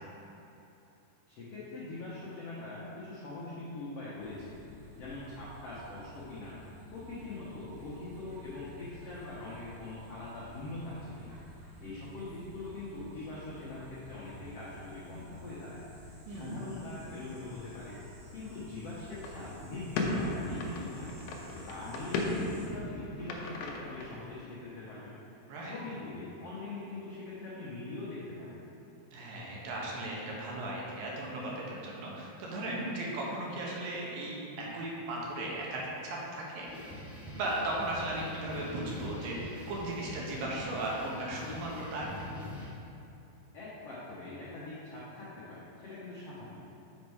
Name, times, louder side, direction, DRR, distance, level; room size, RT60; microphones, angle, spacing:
voice 1, 1.3-4.6 5.0-6.6 6.9-18.0 18.3-21.2 21.5-28.6 43.5-46.6, left 2 dB, 75° left, -8 dB, 1.4 m, -43 dB
sound 1, 4.2-22.7, equal, 55° right, 2.2 m, -52 dB
voice 2, 16.3-16.7 25.5-25.8 29.1-36.7 37.3-42.1, right 1 dB, 75° right, -4 dB, 2.7 m, -36 dB
sound 2, 19.1-24.3, left 2 dB, 90° left, 1.6 m, -36 dB
sound 3, 36.7-42.7, left 1 dB, 50° left, 0.8 m, -45 dB
6.6 x 5.4 x 4.7 m, 2.8 s
omnidirectional pair, 4.2 m